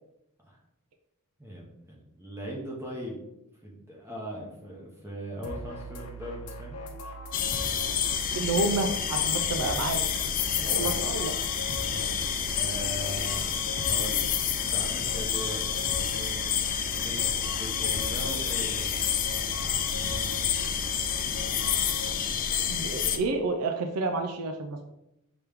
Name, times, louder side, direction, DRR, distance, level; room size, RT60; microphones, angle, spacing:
voice 1, 1.4-3.2 3.6-6.8 10.8-11.1 11.8-14.3 14.6-15.7 15.9-16.5 16.9-18.9, equal, 10° right, -3 dB, 0.8 m, -40 dB
sound 1, 5.4-22.1, equal, 85° left, 0.7 m, -40 dB
sound 2, 7.3-23.2, left 8 dB, 40° left, 0.3 m, -29 dB
voice 2, 8.3-10.0 10.6-11.3 22.7-24.9, right 3 dB, 80° right, 5 dB, 0.4 m, -29 dB
sound 3, 10.8-13.2, right 2 dB, 50° right, 1.3 m, -52 dB
5.0 x 3.0 x 3.4 m, 0.87 s
head